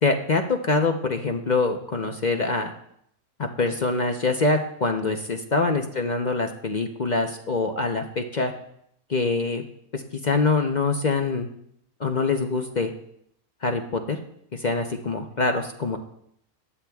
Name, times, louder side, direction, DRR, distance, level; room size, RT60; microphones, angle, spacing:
voice 1, 0.0-2.7 3.4-8.5 9.1-9.6 9.9-11.5 12.0-12.9 13.6-14.2 14.5-16.0, left 3 dB, 40° left, 4 dB, 0.6 m, -24 dB
18.5 x 12.0 x 2.3 m, 0.72 s
omnidirectional pair, 1.6 m